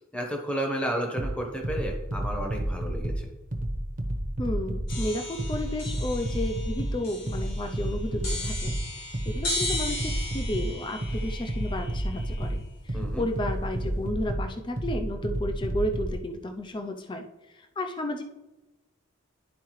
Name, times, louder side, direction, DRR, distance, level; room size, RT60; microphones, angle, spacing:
voice 1, 0.1-3.3 12.9-13.3, right 1 dB, 5° left, 1 dB, 0.9 m, -32 dB
sound 1, 1.2-16.2, right 1 dB, 40° right, 0.8 m, -31 dB
voice 2, 4.4-18.2, left 1 dB, 20° left, 5 dB, 0.4 m, -33 dB
sound 2, 4.9-12.8, left 2 dB, 50° left, 2.1 m, -37 dB
11.0 x 4.6 x 3.1 m, 1.1 s
head